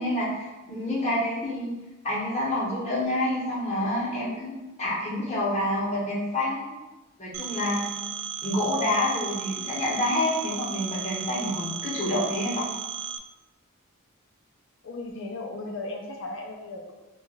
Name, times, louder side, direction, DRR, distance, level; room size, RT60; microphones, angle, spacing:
voice 1, 0.0-1.7 2.0-6.8 7.2-7.8 8.4-12.7, left 1 dB, 30° left, -5 dB, 0.9 m, -28 dB
Telephone, 7.3-13.2, right 9 dB, 80° right, 0.3 m, -35 dB
voice 2, 14.8-16.9, left 2 dB, 60° left, 1 dB, 0.6 m, -36 dB
2.8 x 2.4 x 4.0 m, 1.1 s
head